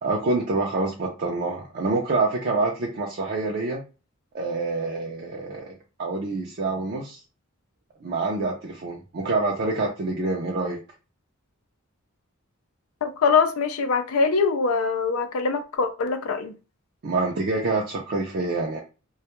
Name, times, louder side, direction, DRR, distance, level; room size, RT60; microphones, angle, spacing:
voice 1, 0.0-3.8 4.3-7.2 8.0-10.8 17.0-18.8, right 3 dB, 50° right, 0.4 m, -26 dB
voice 2, 13.0-16.5, left 5 dB, 90° left, 0.4 m, -23 dB
2.2 x 2.1 x 2.9 m
head